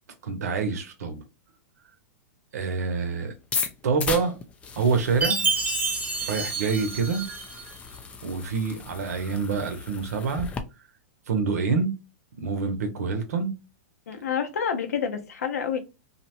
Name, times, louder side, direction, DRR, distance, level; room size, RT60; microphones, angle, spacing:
voice 1, 0.2-1.2 2.5-3.3 3.8-4.4 4.8-5.5 6.2-7.2 8.2-10.5 11.3-11.9 12.4-13.5, right 5 dB, 80° right, 0.7 m, -26 dB
sound 1, 3.4-10.6, left 5 dB, 15° left, 0.3 m, -36 dB
Chime, 5.2-7.7, right 4 dB, 15° right, 0.7 m, -28 dB
voice 2, 14.1-15.8, left 7 dB, 85° left, 0.7 m, -28 dB
2.7 x 2.1 x 2.8 m
hypercardioid pair, 130°, 8 cm